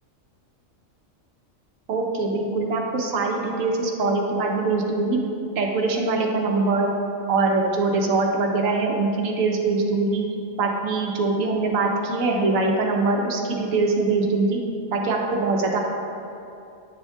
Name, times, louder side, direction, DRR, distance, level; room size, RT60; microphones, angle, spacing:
voice 1, 1.9-5.2 5.6-6.9 7.3-10.2 10.6-14.6 14.9-15.8, right 3 dB, 90° right, 1 dB, 1.1 m, -23 dB
9.1 x 7.0 x 2.3 m, 2.7 s
omnidirectional pair, 1.4 m